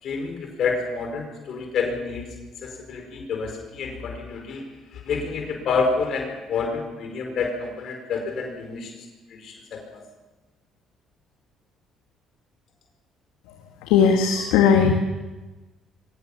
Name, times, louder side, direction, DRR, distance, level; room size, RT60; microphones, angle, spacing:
voice 1, 0.0-2.2 2.6-4.6 4.9-8.9 9.3-10.0, left 4 dB, 60° left, 3 dB, 4.8 m, -28 dB
voice 2, 13.9-14.9, left 6 dB, 85° left, 3 dB, 1.9 m, -17 dB
22.5 x 18.0 x 7.2 m, 1.2 s
supercardioid pair, 65°, 0 cm